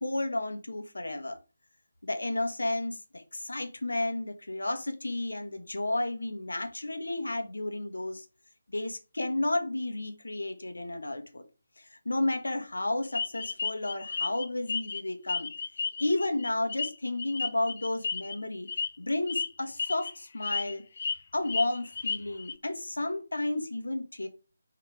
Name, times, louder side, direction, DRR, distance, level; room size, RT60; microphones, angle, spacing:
voice 1, 0.0-1.4 2.0-8.2 8.7-11.4 11.8-15.5 16.0-18.7 19.0-20.8 21.3-24.3, left 2 dB, 65° left, 1.5 m, -32 dB
sound 1, 13.1-15.0 15.3-18.3 18.7-18.9 19.3-19.5 19.8-20.1 20.4-21.2 21.4-22.5, left 5 dB, 45° left, 0.7 m, -33 dB
6.6 x 3.8 x 4.9 m
figure-of-eight pair, 150°, 0 cm